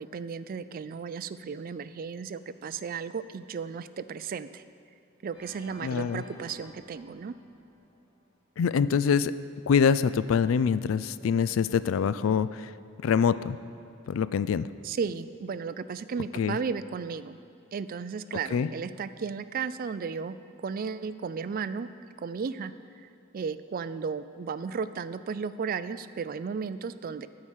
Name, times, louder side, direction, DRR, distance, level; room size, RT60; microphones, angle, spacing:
voice 1, 0.0-4.6 5.2-7.3 14.8-17.4 17.7-21.9 22.2-22.7 23.0-27.3, right 5 dB, 45° right, 13 dB, 0.3 m, -34 dB
Organ, 5.3-8.4, left 1 dB, 30° left, 2.4 m, -52 dB
voice 2, 5.8-6.2 8.6-9.3 9.7-12.7 13.0-13.6 14.1-14.7 16.4-16.6 18.5-18.7, left 6 dB, 70° left, 16 dB, 0.3 m, -25 dB
14.0 x 4.8 x 7.4 m, 2.6 s
head